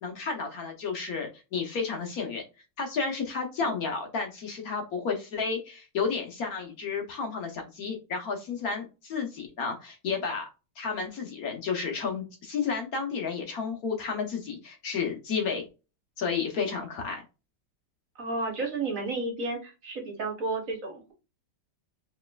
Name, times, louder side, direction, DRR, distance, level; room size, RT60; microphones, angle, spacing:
voice 1, 0.0-2.4 2.8-10.5 10.8-15.7 16.2-17.2, left 5 dB, 60° left, 3 dB, 1.1 m, -32 dB
voice 2, 18.2-21.1, right 3 dB, 55° right, 2 dB, 1.2 m, -32 dB
4.2 x 3.2 x 2.3 m, 0.29 s
omnidirectional pair, 1.9 m